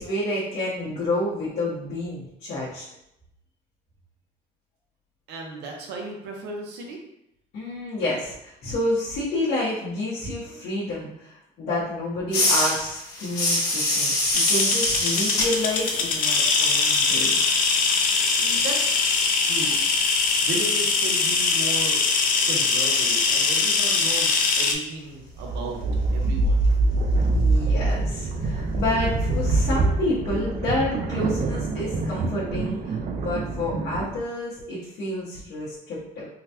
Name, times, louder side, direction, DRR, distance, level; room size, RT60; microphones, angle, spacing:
voice 1, 0.0-2.8 7.5-17.4 27.3-36.3, left 1 dB, 70° left, -9 dB, 1.1 m, -29 dB
voice 2, 5.3-7.0 18.4-19.8 20.4-22.0 22.5-25.8 26.1-26.7, right 3 dB, 85° right, 0 dB, 0.8 m, -35 dB
sound 1, 12.3-17.8 18.1-23.0, left 2 dB, 85° left, 1.3 m, -27 dB
sound 2, 14.3-24.7, left 4 dB, 55° left, 0.5 m, -22 dB
sound 3, 25.2-34.1, right 2 dB, 45° right, 0.4 m, -24 dB
3.8 x 2.2 x 2.8 m, 0.80 s
cardioid pair, 110°, 17 cm